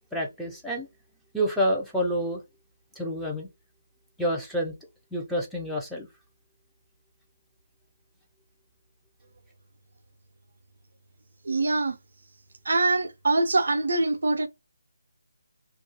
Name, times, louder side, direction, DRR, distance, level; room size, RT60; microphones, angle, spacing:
voice 1, 0.1-0.9 1.3-2.4 3.0-3.5 4.2-4.7 5.1-6.1, equal, ahead, 0.5 m, -28 dB
voice 2, 11.4-12.0 12.7-14.5, right 2 dB, 65° right, 0.4 m, -24 dB
2.3 x 2.3 x 2.7 m
figure-of-eight pair, 160°, 0 cm